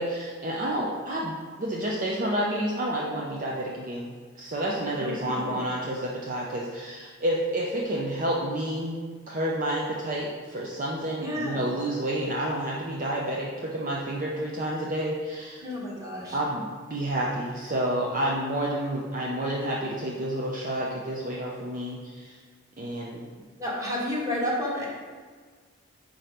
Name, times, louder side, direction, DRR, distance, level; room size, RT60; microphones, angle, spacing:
voice 1, 0.0-9.0 9.3-15.7 16.3-22.4 22.8-23.3, right 1 dB, 40° right, -3 dB, 0.6 m, -30 dB
voice 2, 5.0-5.6 11.2-11.6 15.6-16.4 23.6-24.9, left 1 dB, 15° right, -5 dB, 1.4 m, -31 dB
5.2 x 4.4 x 5.1 m, 1.5 s
head